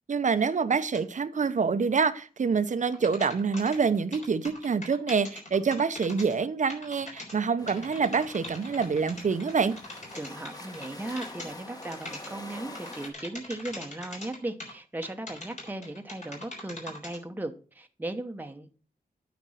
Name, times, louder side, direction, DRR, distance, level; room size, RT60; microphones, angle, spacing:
voice 1, 0.1-9.7, right 5 dB, 55° right, 12 dB, 0.8 m, -26 dB
sound 1, 0.9-1.0 2.9-6.4 6.7-7.4 7.7-11.5 11.8-12.3 12.8-14.7 15.0-17.2, left 2 dB, 50° left, 3.7 m, -42 dB
sound 2, 7.6-13.1, left 1 dB, 25° left, 1.6 m, -45 dB
voice 2, 10.1-18.7, right 1 dB, 10° right, 6 dB, 1.0 m, -37 dB
9.2 x 5.2 x 5.8 m, 0.36 s
wide cardioid pair, 90°, 15 cm